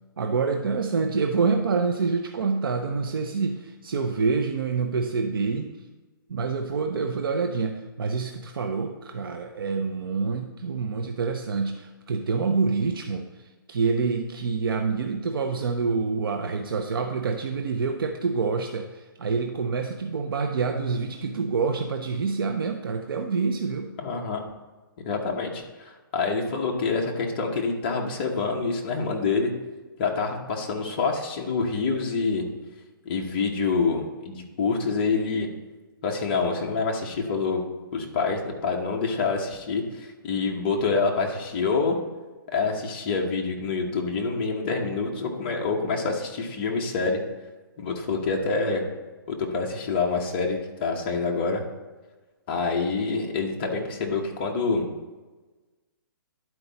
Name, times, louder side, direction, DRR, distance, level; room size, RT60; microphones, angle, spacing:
voice 1, 0.2-5.7 6.3-13.3 13.7-23.9, right 4 dB, 75° right, 4 dB, 0.7 m, -27 dB
voice 2, 24.0-24.4 25.0-29.5 30.0-32.4 33.0-35.5 36.0-37.6 37.9-42.0 42.5-47.2 47.8-48.8 49.3-51.6 52.5-54.9, left 4 dB, 25° left, 1 dB, 1.0 m, -26 dB
11.0 x 4.6 x 4.0 m, 1.2 s
hypercardioid pair, 170°, 12 cm